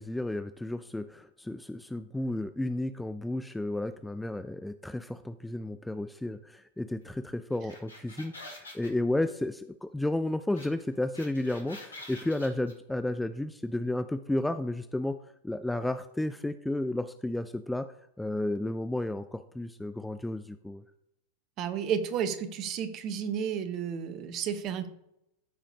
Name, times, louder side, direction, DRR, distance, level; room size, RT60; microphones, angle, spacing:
voice 1, 0.0-15.2 15.4-17.9 18.2-20.8, left 1 dB, 5° left, 11 dB, 0.3 m, -32 dB
sound 1, 7.5-8.9 10.6-10.7 10.9-12.7, left 2 dB, 75° left, 1.9 m, -46 dB
voice 2, 21.6-24.9, right 8 dB, 35° right, 10 dB, 0.9 m, -32 dB
14.0 x 5.0 x 2.8 m, 0.80 s
figure-of-eight pair, 90°, 0 cm